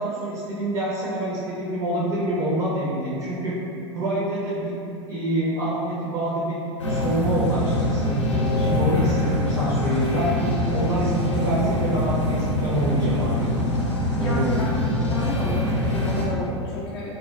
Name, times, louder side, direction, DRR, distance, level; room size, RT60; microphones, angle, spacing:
voice 1, 0.0-3.5 3.9-4.8 5.1-6.5 6.9-8.2 8.6-13.5 14.2-14.6, right 1 dB, 40° right, -7 dB, 0.6 m, -26 dB
sound 1, 6.8-16.3, left 1 dB, 85° left, 0.5 m, -24 dB
voice 2, 14.2-14.7 15.1-17.2, left 2 dB, 25° left, -8 dB, 0.4 m, -31 dB
3.7 x 2.1 x 2.2 m, 2.6 s
figure-of-eight pair, 85°, 15 cm